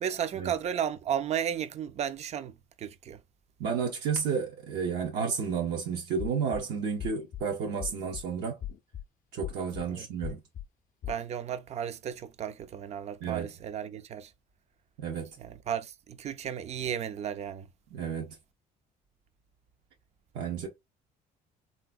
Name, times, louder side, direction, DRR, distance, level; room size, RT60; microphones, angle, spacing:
voice 1, 0.0-2.5 2.8-3.2 9.9-10.1 11.1-14.3 15.4-17.7, right 9 dB, 40° right, 0.4 m, -34 dB
voice 2, 3.6-8.6 9.3-10.4 13.2-13.5 15.0-15.4 17.9-18.4 20.3-20.7, right 6 dB, 80° right, 0.8 m, -31 dB
sound 1, 6.2-6.6 7.0-7.4 7.8-8.2 8.6-9.0 9.4-9.8 10.2-10.6 11.0-11.2, left 11 dB, 50° left, 0.5 m, -38 dB
3.3 x 2.8 x 2.2 m
cardioid pair, 110°, 17 cm